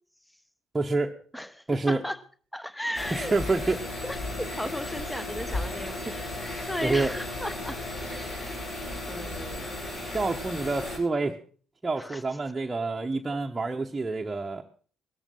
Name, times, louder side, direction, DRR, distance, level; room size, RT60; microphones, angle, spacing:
voice 1, 0.7-1.1 1.7-2.0 3.1-3.8 6.8-7.1 10.1-11.4 11.8-14.6, right 3 dB, 20° right, 1.1 m, -27 dB
voice 2, 1.3-2.2 2.5-3.3 3.6-3.8 4.0-7.8 8.1-8.6 9.1-9.7 12.0-12.2 13.3-13.4, left 1 dB, 5° left, 1.1 m, -36 dB
sound 1, 2.9-11.0, left 2 dB, 55° left, 6.4 m, -35 dB
18.0 x 13.5 x 3.9 m
figure-of-eight pair, 45°, 0 cm